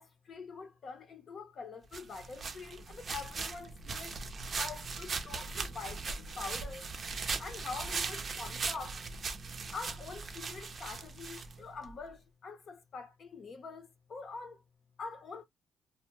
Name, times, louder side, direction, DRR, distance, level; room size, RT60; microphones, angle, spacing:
voice 1, 0.0-4.2 4.6-6.9 7.4-9.0 9.7-14.6 15.0-15.5, left 4 dB, 50° left, 0.6 m, -45 dB
sound 1, 1.9-11.9, right 4 dB, 45° right, 0.5 m, -39 dB
2.2 x 2.0 x 2.9 m
cardioid pair, 90°, 0 cm